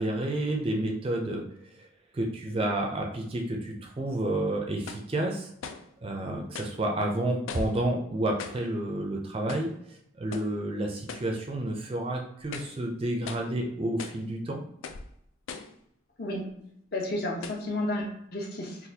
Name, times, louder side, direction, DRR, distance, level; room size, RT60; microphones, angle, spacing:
voice 1, 0.0-1.9 2.1-5.5 6.0-14.6, right 1 dB, 30° right, 2 dB, 0.4 m, -30 dB
sound 1, 3.8-3.9 4.9-5.1 5.6-5.9 6.5-6.8 7.5-7.8 8.4-8.7 9.5-9.8 10.3-10.6 11.1-11.4 11.8-11.9 12.4-12.8 13.3-13.5 14.0-14.3 14.8-15.1 15.5-15.8 16.5-16.6 17.4-17.7, left 5 dB, 80° left, 0.3 m, -40 dB
voice 2, 16.9-18.8, left 1 dB, 50° left, 0 dB, 0.7 m, -32 dB
4.0 x 2.3 x 2.7 m, 0.74 s
head